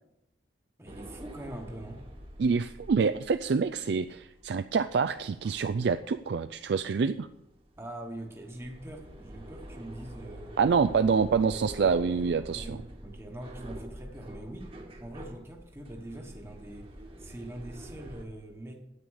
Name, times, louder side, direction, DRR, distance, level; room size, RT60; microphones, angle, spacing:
voice 1, 0.8-2.0 7.8-10.5 11.7-11.9 12.5-14.7 15.0-16.9 17.2-18.8, right 1 dB, 15° right, 2 dB, 1.1 m, -43 dB
sound 1, 0.9-18.2, right 1 dB, 30° right, 1.3 m, -46 dB
voice 2, 2.4-7.3 10.6-12.8, right 5 dB, 65° right, 10 dB, 0.4 m, -26 dB
9.7 x 8.4 x 6.4 m, 0.93 s
head